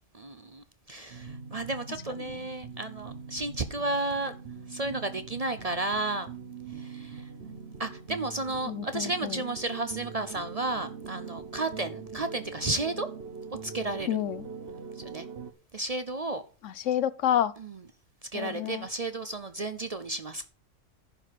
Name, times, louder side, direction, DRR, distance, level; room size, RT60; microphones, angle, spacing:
voice 1, 0.1-4.3 4.7-6.3 6.8-7.2 7.8-13.1 13.6-14.1 15.0-15.3 15.7-16.4 17.6-17.8 18.3-20.5, right 2 dB, 40° right, 0.6 m, -33 dB
sound 1, 1.1-15.5, right 5 dB, 55° right, 1.2 m, -42 dB
voice 2, 8.7-9.4 14.1-14.5 16.6-17.5 18.3-18.9, left 10 dB, 80° left, 1.1 m, -29 dB
11.0 x 4.9 x 7.6 m
omnidirectional pair, 1.3 m